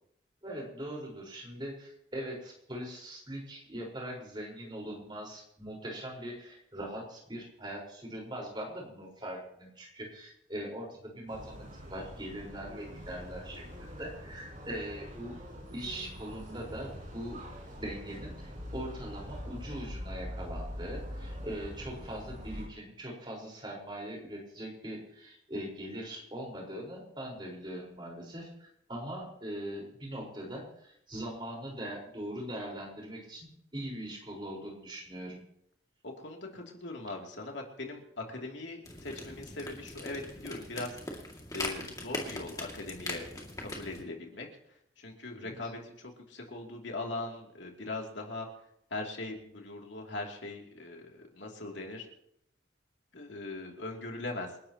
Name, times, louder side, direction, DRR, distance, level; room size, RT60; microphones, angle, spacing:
voice 1, 0.4-15.4 15.7-17.4 17.7-35.4 45.3-45.6, right 1 dB, 25° right, -2 dB, 4.6 m, -41 dB
sound 1, 11.3-22.7, equal, 45° right, 4.2 m, -43 dB
voice 2, 36.0-40.9 41.5-43.2 43.6-44.5 45.0-48.5 48.9-52.1 53.1-54.5, left 2 dB, 70° left, 0 dB, 2.8 m, -40 dB
sound 2, 38.8-44.0, left 2 dB, 20° left, 2.3 m, -41 dB
28.0 x 12.0 x 3.0 m, 0.75 s
head